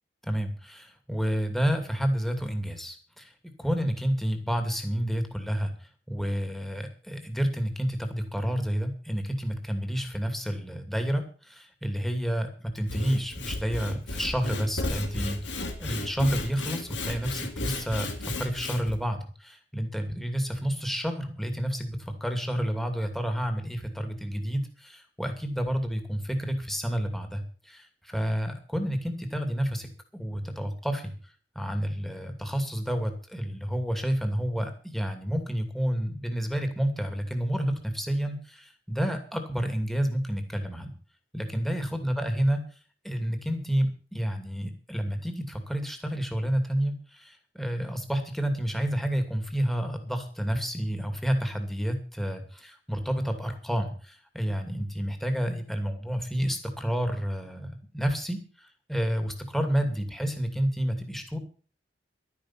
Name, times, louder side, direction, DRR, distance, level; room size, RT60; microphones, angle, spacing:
voice 1, 0.2-3.3 3.6-29.9 30.1-31.1 31.5-40.9 41.3-42.6 43.0-61.4, equal, ahead, 5 dB, 2.6 m, -30 dB
Sawing / Wood, 12.7-19.0, left 2 dB, 75° left, 2.7 m, -34 dB
12.0 x 10.5 x 7.4 m, 0.40 s
head